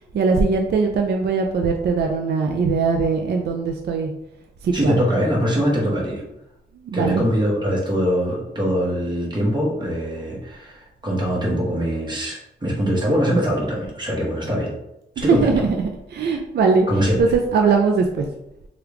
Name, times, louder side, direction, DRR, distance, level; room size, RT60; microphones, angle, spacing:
voice 1, 0.1-4.1 4.6-5.0 6.8-7.2 15.2-16.9 17.2-18.3, right 4 dB, 60° right, 3 dB, 0.4 m, -20 dB
voice 2, 4.7-6.2 6.9-14.7 15.2-15.6 16.9-17.3, equal, 25° right, -3 dB, 1.1 m, -22 dB
3.0 x 2.4 x 3.3 m, 0.87 s
cardioid pair, 95°, 20 cm